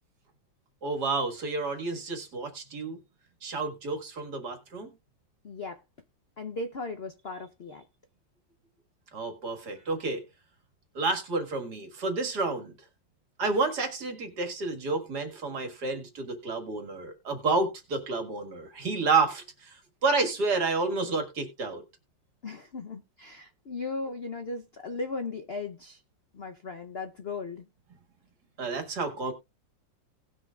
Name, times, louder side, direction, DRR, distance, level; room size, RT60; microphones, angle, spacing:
voice 1, 0.8-3.0 3.4-4.9 9.1-10.2 11.0-12.7 13.4-21.8 28.6-29.3, right 3 dB, 60° right, 2.3 m, -30 dB
voice 2, 5.4-5.8 6.4-7.8 22.4-26.0 26.3-27.6, left 3 dB, 55° left, 0.7 m, -37 dB
18.5 x 6.3 x 2.4 m
omnidirectional pair, 2.1 m